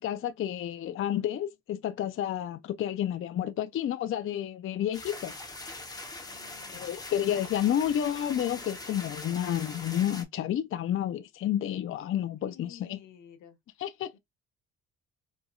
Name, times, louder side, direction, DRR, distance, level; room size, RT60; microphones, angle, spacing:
voice 1, 0.0-5.3 6.7-13.0 13.8-14.2, left 10 dB, 45° left, 0.4 m, -30 dB
sound 1, 4.9-10.2, left 2 dB, 15° left, 0.8 m, -42 dB
voice 2, 6.2-6.9 12.4-13.6 14.0-14.2, left 8 dB, 85° left, 0.9 m, -53 dB
4.2 x 2.7 x 2.3 m
cardioid pair, 90°, 30 cm